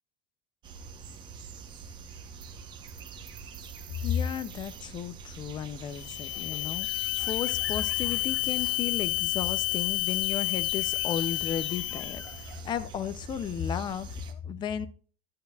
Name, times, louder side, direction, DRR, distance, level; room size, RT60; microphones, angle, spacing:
sound 1, 0.6-14.3, right 5 dB, 25° right, 0.8 m, -45 dB
voice 1, 4.0-14.9, left 8 dB, 25° left, 0.4 m, -34 dB
sound 2, 5.9-12.5, left 21 dB, 70° left, 0.6 m, -30 dB
sound 3, 6.3-9.4 11.0-13.0, right 1 dB, 5° left, 1.4 m, -52 dB
10.5 x 10.0 x 2.3 m
cardioid pair, 175°, 19 cm